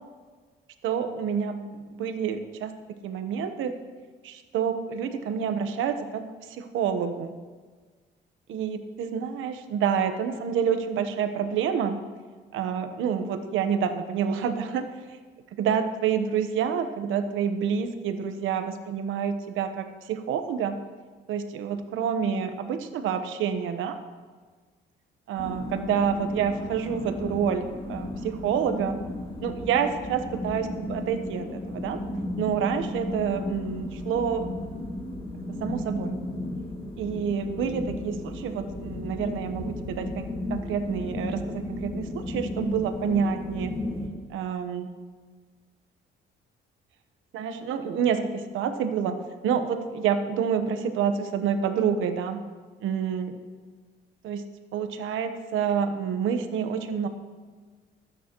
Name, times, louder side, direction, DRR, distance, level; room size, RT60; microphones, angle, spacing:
voice 1, 0.8-3.7 4.2-7.4 8.5-12.0 12.5-14.9 15.5-20.8 21.3-24.0 25.3-29.0 29.4-32.0 32.4-34.5 35.5-36.1 37.0-43.7 44.3-44.9 47.3-49.2 49.4-52.4 52.8-53.4 54.2-54.4 54.7-57.1, right 7 dB, 85° right, 8 dB, 1.1 m, -28 dB
sound 1, 25.4-44.1, left 1 dB, 25° left, 2.6 m, -34 dB
25.5 x 9.2 x 3.1 m, 1.4 s
cardioid pair, 90°, 20 cm